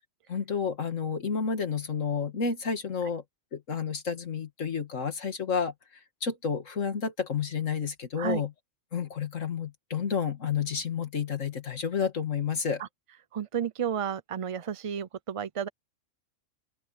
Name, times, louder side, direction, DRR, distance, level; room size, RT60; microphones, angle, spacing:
voice 1, 0.3-3.2 3.5-5.7 6.2-8.5 8.9-12.8, left 6 dB, 75° left, 2.1 m, -30 dB
voice 2, 13.3-15.7, right 8 dB, 60° right, 0.3 m, -32 dB
open air
omnidirectional pair, 1.3 m